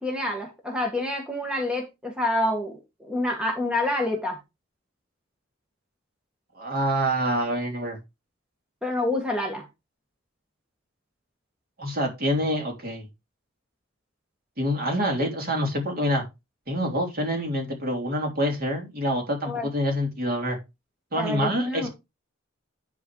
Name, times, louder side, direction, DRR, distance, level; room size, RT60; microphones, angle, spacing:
voice 1, 0.0-2.7 3.1-4.4 8.8-9.6 19.4-19.7 21.2-21.9, left 1 dB, 5° right, 1.8 m, -27 dB
voice 2, 6.6-8.0 11.8-13.1 14.6-16.2 16.7-20.6 21.1-21.9, equal, 45° right, 3.2 m, -26 dB
10.5 x 4.6 x 4.8 m
head